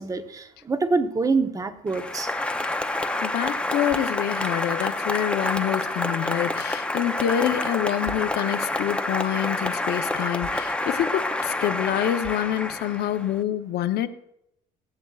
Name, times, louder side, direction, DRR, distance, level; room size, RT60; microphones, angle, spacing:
voice 1, 0.0-2.3, right 3 dB, 20° right, 8 dB, 0.8 m, -25 dB
Applause, 1.9-13.4, left 2 dB, 5° left, 0.7 m, -28 dB
voice 2, 3.2-14.1, left 11 dB, 70° left, 9 dB, 0.8 m, -26 dB
23.0 x 8.0 x 2.4 m, 0.77 s
cardioid pair, 110°, 17 cm